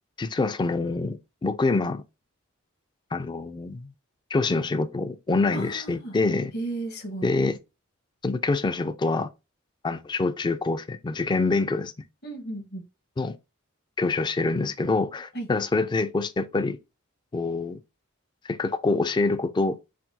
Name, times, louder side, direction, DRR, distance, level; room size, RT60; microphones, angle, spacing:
voice 1, 0.2-2.0 3.1-3.9 4.3-6.5 7.2-7.6 8.2-9.3 9.8-11.9 13.2-13.4 14.0-16.8 17.3-17.8 18.4-19.8, left 3 dB, 20° left, 0.3 m, -26 dB
voice 2, 5.5-6.2 6.5-7.3 12.2-12.8 15.3-15.5, right 2 dB, 50° left, 1.1 m, -34 dB
5.7 x 2.3 x 2.7 m
head